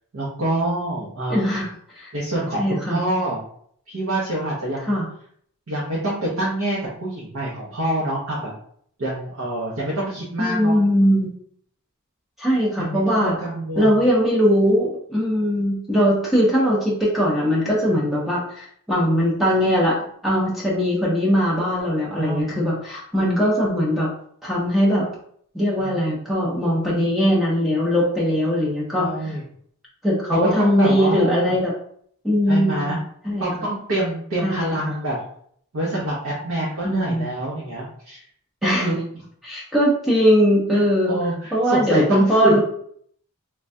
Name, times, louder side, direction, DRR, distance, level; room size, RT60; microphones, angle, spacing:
voice 1, 0.1-1.6 2.1-3.4 3.9-4.9 5.7-8.5 9.0-10.8 12.8-14.0 17.9-18.1 22.2-22.6 25.8-26.2 28.9-29.4 30.3-31.5 32.5-33.0 33.4-35.2 35.7-38.2 38.6-39.0 40.7-42.6, right 1 dB, 65° right, -6 dB, 0.7 m, -26 dB
voice 2, 1.3-1.7 1.9-2.1 2.6-3.0 4.8-5.1 10.4-11.3 12.4-13.4 13.8-20.0 20.2-24.1 24.4-25.1 25.5-29.1 30.0-31.7 32.2-33.5 34.4-34.9 36.8-37.2 38.6-38.9 39.4-41.2 41.5-42.6, equal, ahead, -6 dB, 0.5 m, -20 dB
3.3 x 2.2 x 2.6 m, 0.64 s
head